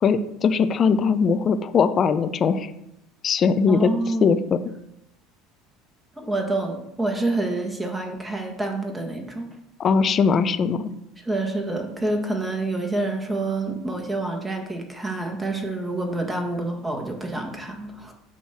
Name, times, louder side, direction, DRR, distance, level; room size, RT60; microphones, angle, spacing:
voice 1, 0.0-2.7 3.2-3.9 4.2-4.6 9.8-10.9, left 5 dB, 40° left, 11 dB, 0.6 m, -20 dB
voice 2, 3.7-4.3 6.2-9.5 11.2-18.1, right 2 dB, 15° right, 3 dB, 1.5 m, -27 dB
8.1 x 3.1 x 5.9 m, 0.83 s
hypercardioid pair, 85°, 0 cm